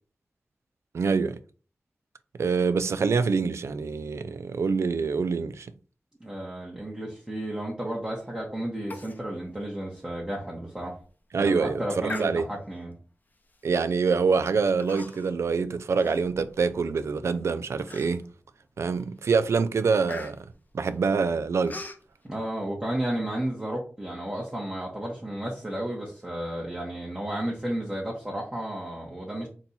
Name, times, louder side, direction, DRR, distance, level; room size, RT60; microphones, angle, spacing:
voice 1, 0.9-1.4 2.4-5.7 11.3-12.5 13.6-18.2 18.8-20.5 20.7-21.8, right 5 dB, 80° right, 0.3 m, -25 dB
voice 2, 6.2-11.0 11.3-12.9 22.2-29.5, right 1 dB, 15° right, 0.9 m, -32 dB
Human voice, 8.9-9.2 9.5-9.6 10.2-10.3 10.8-11.1 12.0-12.8 13.5-13.8 14.8-15.4 15.8-16.8 17.3-17.4 17.9-18.4 18.9-19.2 19.4-22.0, left 2 dB, 40° left, 0.6 m, -41 dB
4.2 x 2.3 x 3.9 m
wide cardioid pair, 95°, 5 cm